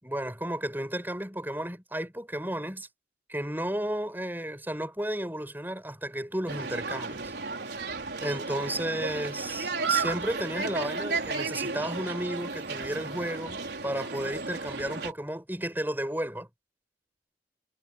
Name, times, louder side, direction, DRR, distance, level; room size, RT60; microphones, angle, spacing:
voice 1, 0.0-2.9 3.3-7.3 7.6-7.8 8.2-16.5, right 1 dB, 10° right, 7.8 m, -33 dB
sound 1, 6.5-15.1, right 4 dB, 75° right, 4.1 m, -33 dB
head